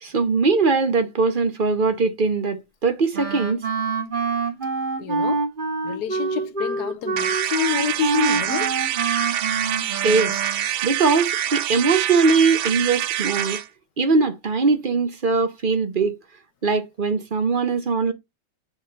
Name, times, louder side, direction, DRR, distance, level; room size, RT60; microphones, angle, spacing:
voice 1, 0.0-3.6 10.0-10.4 10.8-13.6 14.0-16.2 16.6-18.1, right 4 dB, 45° right, 0.7 m, -21 dB
Wind instrument woodwind instrument, 3.1-10.7, right 4 dB, 30° right, 2.2 m, -26 dB
voice 2, 5.0-5.5 5.8-8.7, left 11 dB, 70° left, 1.2 m, -28 dB
sound 1, 7.2-13.7, right 13 dB, 80° right, 1.1 m, -25 dB
6.3 x 3.2 x 5.1 m
omnidirectional pair, 1.8 m